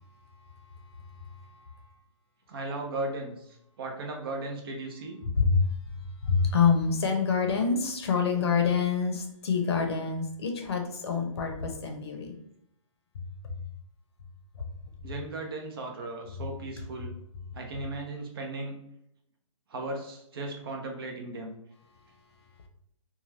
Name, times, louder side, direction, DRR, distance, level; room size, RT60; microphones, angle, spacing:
voice 1, 2.5-5.2 15.0-17.1 17.5-18.8 19.7-21.5, right 2 dB, 45° right, 2 dB, 0.7 m, -36 dB
voice 2, 5.4-5.7 6.2-12.4 14.6-14.7, left 5 dB, 50° left, 3 dB, 0.7 m, -26 dB
2.8 x 2.3 x 3.2 m, 0.75 s
hypercardioid pair, 150°, 17 cm